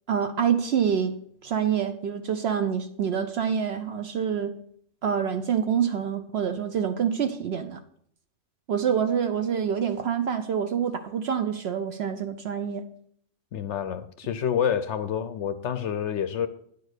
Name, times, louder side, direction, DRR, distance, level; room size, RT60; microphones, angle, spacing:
voice 1, 0.1-1.2 1.4-4.6 5.0-7.8 8.7-12.9, right 8 dB, 65° right, 0.7 m, -26 dB
voice 2, 13.5-16.5, left 8 dB, 65° left, 0.8 m, -28 dB
9.7 x 4.6 x 6.4 m
omnidirectional pair, 1.4 m